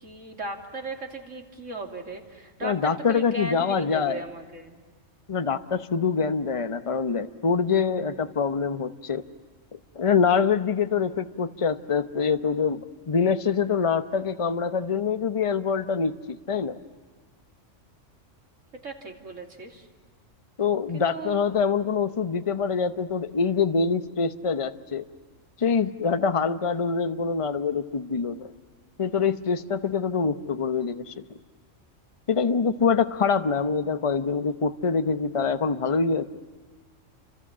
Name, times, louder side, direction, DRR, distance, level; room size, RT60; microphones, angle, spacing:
voice 1, 0.0-4.8 18.8-19.9 20.9-21.4, right 2 dB, 75° right, 2 dB, 3.4 m, -37 dB
voice 2, 2.6-4.2 5.3-9.2 10.0-12.8 13.1-16.8 20.6-25.1 25.6-28.5 29.0-31.2 32.3-36.3, left 5 dB, 30° left, 10 dB, 0.8 m, -25 dB
30.0 x 26.0 x 7.4 m, 1.4 s
omnidirectional pair, 1.3 m